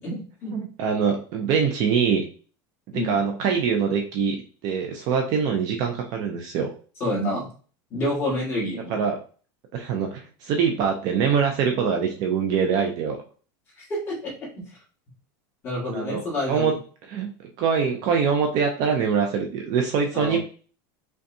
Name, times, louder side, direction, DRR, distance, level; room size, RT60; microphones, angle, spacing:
voice 1, 0.0-0.6 2.9-3.2 7.0-7.5 7.9-9.1 13.7-14.3 15.6-16.7 20.1-20.4, left 1 dB, 20° left, -5 dB, 1.6 m, -28 dB
voice 2, 0.5-2.2 3.0-4.4 4.6-6.7 8.9-9.2 9.7-13.2 15.9-16.2 16.5-16.7 17.1-17.3 17.6-20.4, right 6 dB, 35° right, 3 dB, 0.4 m, -23 dB
5.2 x 2.3 x 2.6 m, 0.40 s
supercardioid pair, 175°, 12 cm